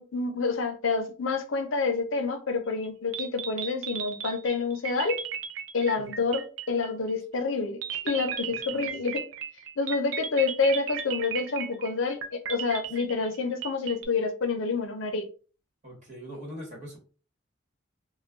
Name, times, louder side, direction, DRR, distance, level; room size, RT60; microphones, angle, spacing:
voice 1, 0.0-5.2 5.7-9.2 9.8-15.3, left 4 dB, 85° left, 6 dB, 0.6 m, -28 dB
sound 1, 2.8-2.9 3.1-7.1 7.8-14.1, right 8 dB, 80° right, 0.4 m, -36 dB
voice 2, 15.8-17.0, equal, 40° right, -2 dB, 1.1 m, -42 dB
2.3 x 2.2 x 3.4 m, 0.38 s
head